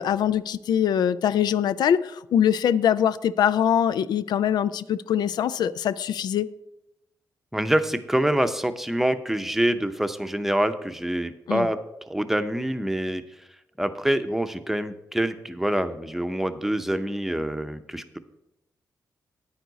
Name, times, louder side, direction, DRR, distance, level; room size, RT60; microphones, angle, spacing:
voice 1, 0.0-6.5 11.5-11.7, left 9 dB, 85° left, 16 dB, 0.3 m, -23 dB
voice 2, 7.5-11.8 12.1-13.2 13.8-18.2, right 1 dB, 5° right, 9 dB, 0.7 m, -26 dB
9.5 x 9.1 x 4.0 m, 0.88 s
cardioid pair, 85°, 7 cm